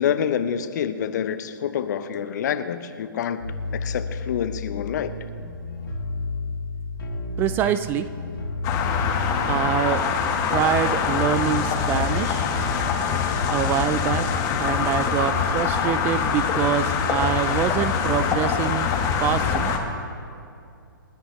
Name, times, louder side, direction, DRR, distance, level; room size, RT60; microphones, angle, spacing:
voice 1, 0.0-3.4 3.7-5.1, left 8 dB, 50° left, 11 dB, 0.9 m, -27 dB
sound 1, 3.4-9.8, left 3 dB, 75° left, 3.4 m, -31 dB
voice 2, 7.4-8.1 9.5-10.0 10.5-12.5 13.5-14.3 14.6-18.9 19.2-19.8, right 10 dB, 15° right, 13 dB, 0.4 m, -25 dB
sound 2, 8.6-19.8, left 6 dB, 25° left, 1.5 m, -24 dB
28.0 x 10.0 x 3.2 m, 2.5 s
figure-of-eight pair, 130°, 12 cm